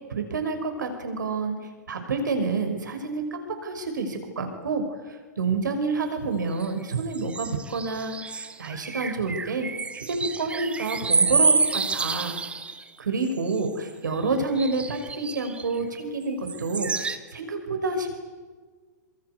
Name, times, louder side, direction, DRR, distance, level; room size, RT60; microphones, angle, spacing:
voice 1, 0.1-1.6 1.9-9.7 9.9-12.4 13.0-18.2, right 3 dB, 80° right, 6 dB, 6.0 m, -28 dB
sound 1, 6.6-12.8 13.2-13.9 14.6-16.0 16.5-17.2, right 4 dB, 10° right, 1.4 m, -28 dB
26.5 x 24.0 x 8.3 m, 1.5 s
hypercardioid pair, 115°, 10 cm